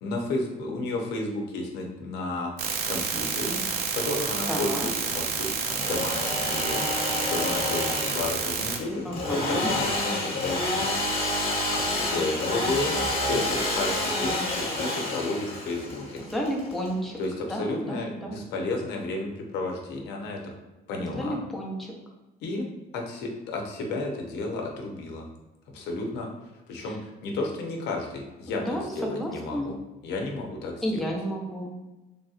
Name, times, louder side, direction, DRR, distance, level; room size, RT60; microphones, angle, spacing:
voice 1, 0.0-6.8 7.2-10.9 11.7-13.0 13.2-16.2 17.2-20.4 20.9-21.4 22.4-22.6 22.9-25.3 25.7-26.3 26.7-29.8 30.0-31.1, left 2 dB, 85° left, 1 dB, 0.6 m, -32 dB
sound 1, 2.6-8.8, right 6 dB, 70° right, 0.5 m, -29 dB
voice 2, 4.5-4.9 9.0-9.7 16.3-17.2 17.5-18.4 21.0-21.9 28.6-29.7 30.8-31.7, equal, ahead, -2 dB, 0.6 m, -31 dB
Engine / Sawing, 5.6-17.3, left 1 dB, 35° left, 1.0 m, -29 dB
3.3 x 2.7 x 2.4 m, 1.0 s
cardioid pair, 110°, 17 cm